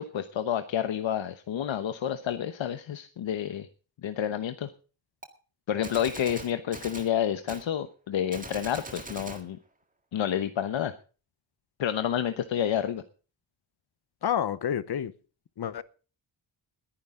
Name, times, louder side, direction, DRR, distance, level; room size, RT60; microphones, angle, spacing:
voice 1, 0.0-3.7 4.0-4.7 5.7-9.6 10.1-10.9 11.8-13.0, left 9 dB, 85° left, 1.0 m, -29 dB
Gunshot gunfire, 5.2-5.3 5.8-7.1 7.5-7.7 8.3-9.4, right 2 dB, 20° right, 1.9 m, -41 dB
voice 2, 14.2-15.1 15.6-15.8, left 9 dB, 60° left, 0.9 m, -29 dB
20.5 x 10.0 x 3.7 m
wide cardioid pair, 150°, 44 cm